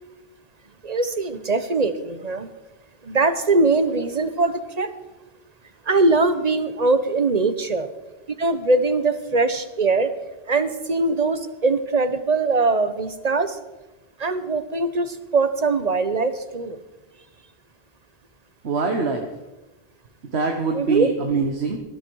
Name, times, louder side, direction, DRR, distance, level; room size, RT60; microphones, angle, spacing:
voice 1, 0.8-2.5 3.0-4.9 5.9-7.9 8.4-10.1 10.5-13.6 14.2-16.8 20.7-21.1, right 3 dB, 40° right, 11 dB, 1.1 m, -21 dB
voice 2, 18.6-19.3 20.2-21.8, right 4 dB, 80° right, 3 dB, 1.5 m, -23 dB
19.0 x 13.0 x 4.7 m, 1.1 s
omnidirectional pair, 1.1 m